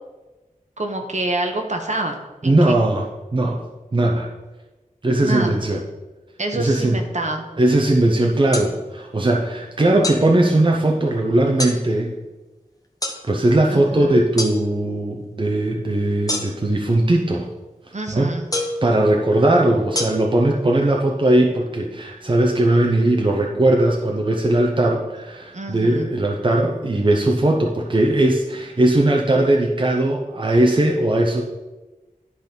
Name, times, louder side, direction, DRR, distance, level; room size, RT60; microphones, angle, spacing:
voice 1, 0.8-2.2 2.4-2.7 5.2-5.6 6.4-7.4 13.7-14.2 17.9-18.5 25.5-26.1, right 2 dB, 55° right, 3 dB, 1.1 m, -27 dB
voice 2, 2.4-3.1 3.3-3.6 3.9-4.3 5.0-5.8 6.5-7.0 7.6-12.2 13.2-17.5 18.1-18.3 18.8-31.4, right 1 dB, 35° right, 0 dB, 0.8 m, -19 dB
sound 1, 8.5-8.7 10.0-10.2 11.6-11.8 13.0-13.2 14.4-14.5 16.3-16.7 18.5-18.8 19.9-20.0, left 2 dB, 25° left, 1.1 m, -25 dB
10.5 x 4.1 x 5.3 m, 1.2 s
wide cardioid pair, 65°, 14 cm